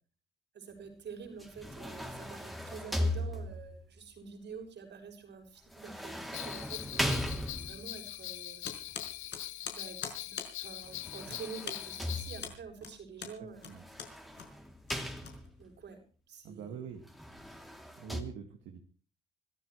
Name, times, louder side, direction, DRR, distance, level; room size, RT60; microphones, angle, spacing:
voice 1, 0.5-8.6 9.7-13.7 15.6-16.0 16.3-16.9, right 5 dB, 60° right, 5 dB, 6.4 m, -48 dB
sound 1, 1.4-3.8 5.7-8.0 10.8-12.7 13.7-15.7 17.0-18.2, left 1 dB, ahead, 3.1 m, -38 dB
Bell, 6.3-12.5, left 15 dB, 85° left, 0.8 m, -43 dB
sound 2, 8.6-15.8, left 7 dB, 60° left, 5.1 m, -44 dB
voice 2, 13.2-13.8 16.4-17.0 18.0-18.8, right 7 dB, 90° right, 4 dB, 2.1 m, -45 dB
25.0 x 14.0 x 3.3 m, 0.40 s
cardioid pair, 90°, 20 cm